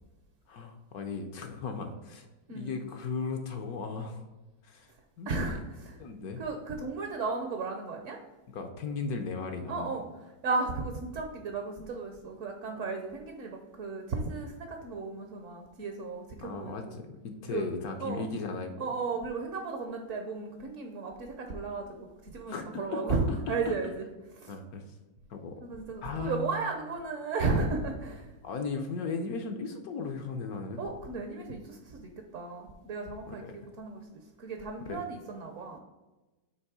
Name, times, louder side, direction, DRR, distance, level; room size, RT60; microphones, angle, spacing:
voice 1, 0.5-2.3 2.5-4.3 4.6-4.9 5.2-5.6 6.0-6.4 8.5-9.9 16.4-18.7 22.5-23.7 24.5-24.8 25.3-25.6 26.0-26.6 28.4-30.9 33.3-33.6 34.9-35.0, left 4 dB, 65° left, 5 dB, 1.0 m, -36 dB
voice 2, 5.3-5.6 6.4-8.2 9.7-10.0 10.4-17.0 17.5-17.7 18.0-18.2 18.8-24.1 24.4-24.5 25.6-28.3 30.8-35.8, right 4 dB, 55° right, 3 dB, 0.9 m, -34 dB
8.1 x 3.1 x 4.8 m, 1.1 s
omnidirectional pair, 2.0 m